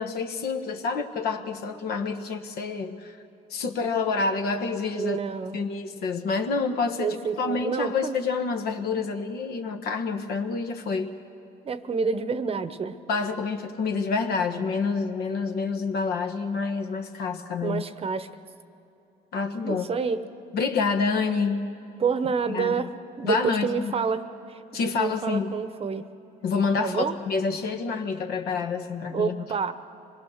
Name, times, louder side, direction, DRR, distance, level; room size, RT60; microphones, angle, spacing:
voice 1, 0.0-3.2 3.5-5.2 5.5-11.1 13.1-17.8 19.3-19.9 20.5-21.6 22.5-22.9 23.2-24.0 24.7-25.5 26.4-29.5, left 4 dB, 70° left, 6 dB, 1.5 m, -28 dB
voice 2, 4.9-5.6 7.0-8.2 11.6-13.0 17.6-18.3 19.6-20.2 22.0-22.9 23.2-24.2 24.5-26.1 26.8-27.1 29.1-29.7, right 5 dB, 35° right, 12 dB, 0.9 m, -28 dB
25.5 x 20.5 x 6.5 m, 2.8 s
cardioid pair, 110°, 17 cm